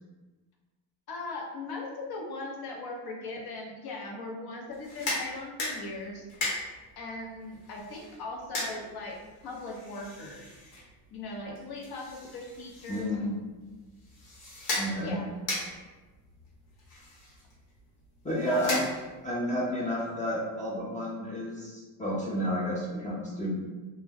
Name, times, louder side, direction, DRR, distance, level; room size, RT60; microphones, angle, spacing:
voice 1, 1.1-6.3 7.0-9.2 9.4-10.5 11.1-13.1 15.0-15.2 18.4-18.8, left 2 dB, 50° left, 0 dB, 0.8 m, -39 dB
sound 1, 4.7-19.3, left 2 dB, 85° left, 1.1 m, -39 dB
voice 2, 12.9-13.4 14.8-15.2 18.2-18.9 19.2-23.6, equal, 15° left, -6 dB, 0.5 m, -31 dB
2.2 x 2.1 x 3.3 m, 1.3 s
supercardioid pair, 90°, 48 cm